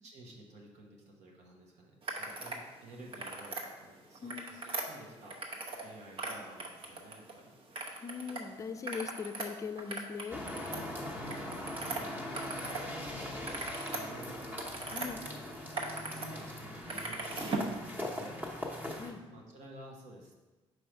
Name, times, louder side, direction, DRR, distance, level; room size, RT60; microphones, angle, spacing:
voice 1, 0.0-5.4 5.8-7.6 10.8-14.5 14.9-15.9 16.2-18.8 19.3-20.4, right 1 dB, 90° right, 0 dB, 1.2 m, -53 dB
sound 1, 2.0-2.6 3.0-3.7 4.1-5.9 6.1-7.3 7.7-8.4 8.7-12.9 13.2-15.1 15.5-16.3 16.6-17.7, right 3 dB, 50° right, 0.9 m, -39 dB
voice 2, 4.2-4.6 8.0-10.4 14.9-15.2 19.0-19.3, left 5 dB, 30° left, 8 dB, 0.4 m, -40 dB
sound 2, 10.3-19.1, left 1 dB, 15° right, 1.0 m, -41 dB
5.1 x 4.8 x 4.6 m, 1.2 s
cardioid pair, 115°, 11 cm